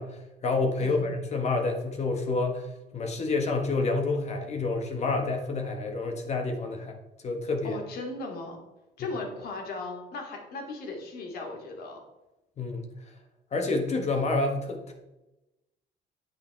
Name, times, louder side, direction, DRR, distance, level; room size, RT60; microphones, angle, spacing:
voice 1, 0.0-7.0 7.2-7.8 12.6-12.9 13.5-14.9, left 3 dB, 40° left, 3 dB, 1.5 m, -28 dB
voice 2, 7.6-8.6 9.0-12.0 13.7-14.0, left 3 dB, 65° left, 1 dB, 2.7 m, -37 dB
9.2 x 8.9 x 3.4 m, 0.99 s
cardioid pair, 110°, 17 cm